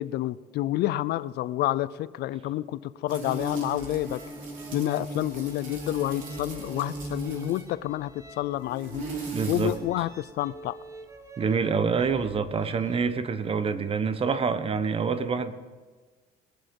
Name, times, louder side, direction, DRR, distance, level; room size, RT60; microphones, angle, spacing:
voice 1, 0.0-4.2 4.7-9.0 9.5-10.8, left 14 dB, 75° left, 0.5 m, -29 dB
sound 1, 3.1-7.7 8.6-9.8, right 2 dB, 55° right, 3.1 m, -37 dB
sound 2, 3.4-13.1, right 2 dB, 20° right, 1.3 m, -48 dB
voice 2, 9.3-9.7 11.4-15.5, right 5 dB, 35° right, 1.0 m, -26 dB
20.0 x 7.5 x 5.3 m
cardioid pair, 110°, 17 cm